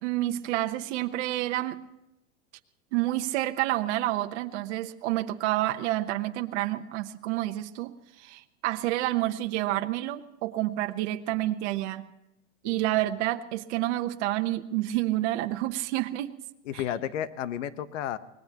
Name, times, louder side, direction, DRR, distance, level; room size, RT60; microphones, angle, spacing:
voice 1, 0.0-1.8 2.9-12.1 12.6-16.4 16.7-16.8, right 15 dB, 65° right, 6 dB, 1.0 m, -29 dB
voice 2, 16.6-18.2, left 10 dB, 80° left, 13 dB, 1.2 m, -32 dB
25.0 x 19.5 x 3.0 m, 0.93 s
supercardioid pair, 140°, 37 cm